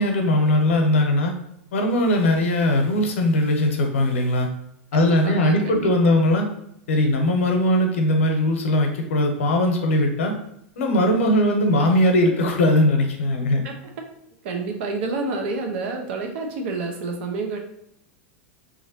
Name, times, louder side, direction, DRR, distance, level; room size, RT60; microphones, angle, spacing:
voice 1, 0.0-1.3 1.7-4.5 4.9-6.5 6.9-10.3 10.8-13.6, left 1 dB, 85° left, 3 dB, 0.7 m, -20 dB
voice 2, 4.9-6.2 13.6-13.7 14.4-17.6, right 3 dB, 70° right, 3 dB, 0.7 m, -29 dB
3.1 x 2.5 x 2.7 m, 0.75 s
hypercardioid pair, 120°, 7 cm